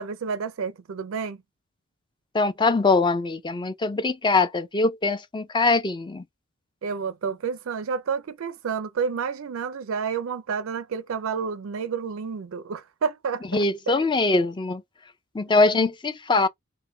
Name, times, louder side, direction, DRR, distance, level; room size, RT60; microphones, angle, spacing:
voice 1, 0.0-1.4 6.8-14.1 15.5-15.9, right 6 dB, 70° right, 0.4 m, -30 dB
voice 2, 2.3-6.2 13.5-14.8 15.3-16.5, left 3 dB, 20° left, 0.5 m, -22 dB
3.9 x 2.1 x 3.8 m
head